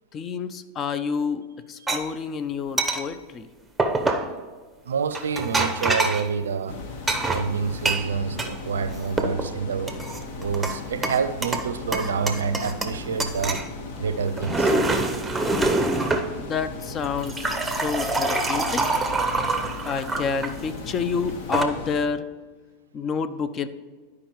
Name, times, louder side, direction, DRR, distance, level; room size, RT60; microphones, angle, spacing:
voice 1, 0.1-1.4 1.7-3.5 16.4-19.0 19.8-22.3 22.9-23.7, left 5 dB, 35° left, 0.5 m, -29 dB
sound 1, 1.9-2.0 2.8-3.0 3.8-4.3 5.1-6.3 7.1-8.5 8.9-9.5 9.9-10.8 11.0-11.7 11.9-12.9 13.2-13.7 14.2-16.3 17.0-20.5 21.3-21.6, right 2 dB, 10° right, 0.7 m, -25 dB
voice 2, 4.9-6.8 7.2-10.0 10.4-13.6 14.0-14.7, right 6 dB, 85° right, 0.5 m, -27 dB
sound 2, 6.7-22.0, left 3 dB, 60° left, 1.0 m, -37 dB
12.0 x 4.8 x 3.1 m
hypercardioid pair, 95°, 0 cm